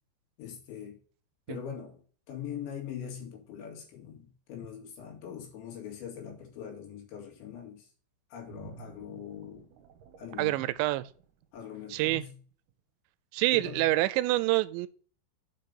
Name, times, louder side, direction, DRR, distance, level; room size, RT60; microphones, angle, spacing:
voice 1, 0.4-1.0 1.5-2.0 2.3-7.9 8.3-9.7 10.2-10.6 11.5-12.4 13.5-13.8, left 8 dB, 80° left, 4.4 m, -42 dB
sound 1, 8.5-12.1 12.5-12.7, right 9 dB, 70° right, 2.1 m, -53 dB
voice 2, 10.4-11.0 11.9-12.2 13.3-14.9, right 18 dB, 90° right, 2.9 m, -27 dB
8.0 x 5.1 x 5.3 m
omnidirectional pair, 5.1 m